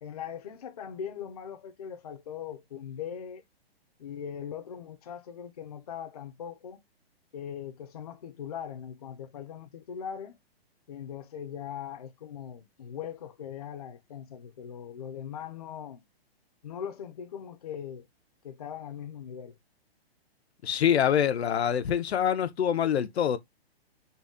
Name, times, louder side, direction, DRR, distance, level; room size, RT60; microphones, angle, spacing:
voice 1, 0.0-3.4 4.0-6.8 7.3-10.4 10.9-16.0 16.6-18.1 18.4-19.6, left 8 dB, 40° left, 0.5 m, -40 dB
voice 2, 20.6-23.4, left 9 dB, 85° left, 0.7 m, -25 dB
4.0 x 2.2 x 3.5 m
hypercardioid pair, 170°, 31 cm